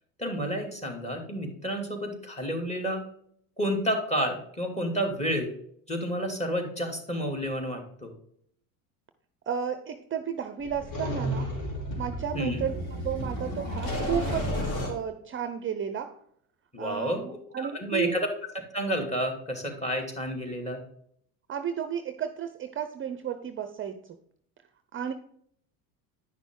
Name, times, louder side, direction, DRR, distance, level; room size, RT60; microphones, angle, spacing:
voice 1, 0.2-3.0 3.6-5.5 5.9-8.1 12.3-12.6 16.7-17.2 17.6-18.3 18.7-20.8, equal, 15° left, 4 dB, 2.6 m, -30 dB
voice 2, 9.5-11.5 12.0-16.2 16.8-18.1 21.5-24.2 24.9-25.1, right 8 dB, 30° right, 9 dB, 0.6 m, -33 dB
sound 1, 10.6-14.9, equal, 45° left, 3.1 m, -32 dB
10.0 x 6.0 x 3.8 m, 0.66 s
hypercardioid pair, 85°, 43 cm